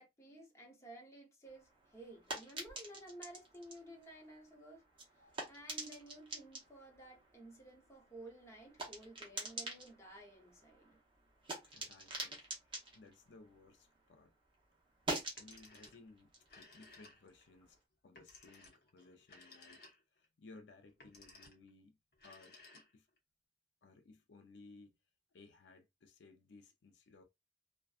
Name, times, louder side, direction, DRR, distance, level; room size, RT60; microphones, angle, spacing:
voice 1, 0.0-4.9 5.5-11.0, right 1 dB, 15° left, 0.8 m, -54 dB
sound 1, 1.4-14.2 14.5-17.7, right 2 dB, 30° right, 0.8 m, -47 dB
voice 2, 11.6-14.3 15.4-19.8 20.2-22.0 22.2-23.1 23.8-24.9 25.3-27.2, left 3 dB, 80° left, 0.5 m, -60 dB
Telephone, 15.2-16.1 16.4-17.5 18.1-20.2 20.9-21.7 22.1-23.2, left 2 dB, 60° left, 0.8 m, -59 dB
2.5 x 2.2 x 2.4 m
head